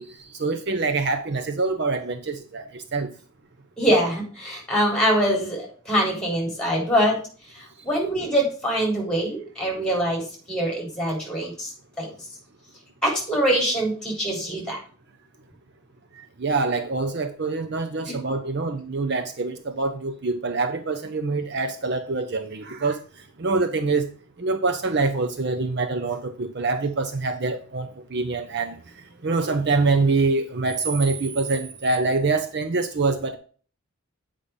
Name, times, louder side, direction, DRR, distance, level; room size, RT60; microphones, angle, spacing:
voice 1, 0.0-3.1 16.1-23.0 23.4-24.1 24.4-28.8 29.2-33.4, right 3 dB, 50° right, 0.6 m, -25 dB
voice 2, 3.8-7.2 7.5-12.1 13.0-14.8 18.1-18.2, equal, 5° left, 3.9 m, -24 dB
8.6 x 5.2 x 5.3 m
head